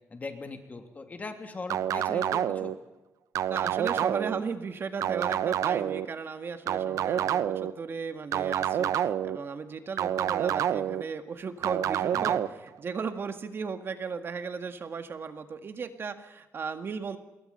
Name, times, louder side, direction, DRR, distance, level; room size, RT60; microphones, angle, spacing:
voice 1, 0.1-2.7 12.1-12.4, left 3 dB, 30° left, 6 dB, 3.0 m, -40 dB
sound 1, 1.7-2.7 3.3-4.4 5.0-6.0 6.7-7.7 8.3-9.4 10.0-11.0 11.6-12.5, right 10 dB, 85° right, 0.9 m, -28 dB
voice 2, 3.5-17.2, right 5 dB, 45° right, 8 dB, 1.8 m, -36 dB
27.0 x 21.5 x 5.6 m, 0.98 s
cardioid pair, 130°, 5 cm